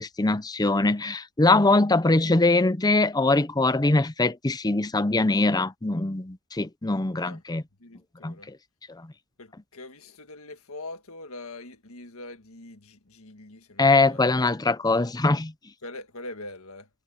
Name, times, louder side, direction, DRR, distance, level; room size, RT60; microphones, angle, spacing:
voice 1, 0.0-7.6 8.2-8.6 8.9-9.0 13.8-15.5, left 2 dB, 20° left, 0.6 m, -22 dB
voice 2, 7.8-8.5 9.4-14.5 15.8-16.9, left 2 dB, 70° left, 1.8 m, -43 dB
head